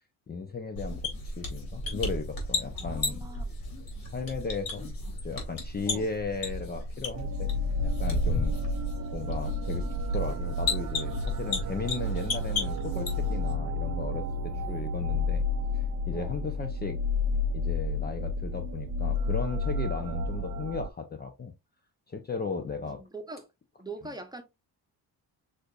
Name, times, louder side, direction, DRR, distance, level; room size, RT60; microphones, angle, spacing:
voice 1, 0.3-3.3 4.1-4.9 5.2-7.5 7.8-8.8 9.1-15.4 15.7-17.0 17.5-21.5 22.1-23.0, left 4 dB, 25° left, 0.6 m, -36 dB
sound 1, 0.8-13.5, left 2 dB, 60° left, 2.2 m, -34 dB
voice 2, 2.7-3.6 5.0-5.2 5.9-6.1 9.0-9.1 13.8-13.9 14.6-14.8 16.1-16.4 19.9-20.1 22.4-23.5 23.8-24.4, right 2 dB, 10° right, 0.8 m, -44 dB
sound 2, 7.1-20.9, left 2 dB, 55° right, 0.5 m, -31 dB
6.3 x 2.7 x 2.4 m
cardioid pair, 105°, 38 cm